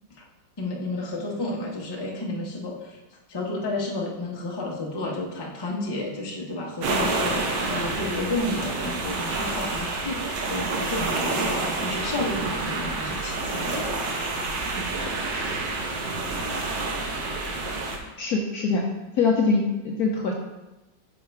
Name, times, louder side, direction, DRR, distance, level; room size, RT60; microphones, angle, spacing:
voice 1, 0.6-3.0 3.3-14.6, left 2 dB, 20° left, -2 dB, 0.6 m, -31 dB
sound 1, 6.8-18.0, right 3 dB, 70° right, 1.4 m, -28 dB
voice 2, 18.0-18.9 19.2-20.3, left 4 dB, 70° left, 1 dB, 1.0 m, -23 dB
6.3 x 4.1 x 4.6 m, 1.0 s
omnidirectional pair, 2.1 m